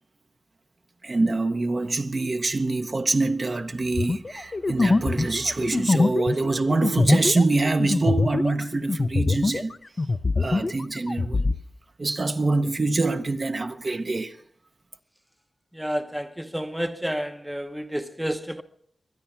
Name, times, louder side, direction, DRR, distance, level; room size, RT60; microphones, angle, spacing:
voice 1, 1.0-9.8 10.4-11.5 12.0-14.4, right 3 dB, 35° right, 0.8 m, -25 dB
sound 1, 3.9-9.7 10.0-11.6, left 3 dB, 35° left, 0.5 m, -23 dB
voice 2, 15.8-18.6, equal, 5° right, 0.8 m, -30 dB
23.0 x 10.5 x 5.8 m
wide cardioid pair, 125°, 0 cm